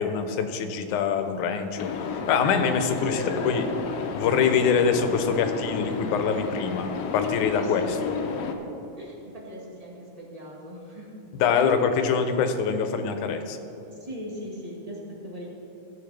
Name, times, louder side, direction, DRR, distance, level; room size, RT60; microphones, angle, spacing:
voice 1, 0.0-1.9 2.3-3.7 4.1-8.1 11.4-13.6, left 6 dB, 90° left, 7 dB, 2.2 m, -24 dB
sound 1, 1.8-8.5, left 5 dB, 70° left, 1.7 m, -32 dB
voice 2, 3.1-3.8 7.6-8.7 8.9-11.1 11.5-11.8 13.9-15.5, equal, 20° right, -4 dB, 0.9 m, -39 dB
15.0 x 8.2 x 3.3 m, 2.9 s
omnidirectional pair, 3.4 m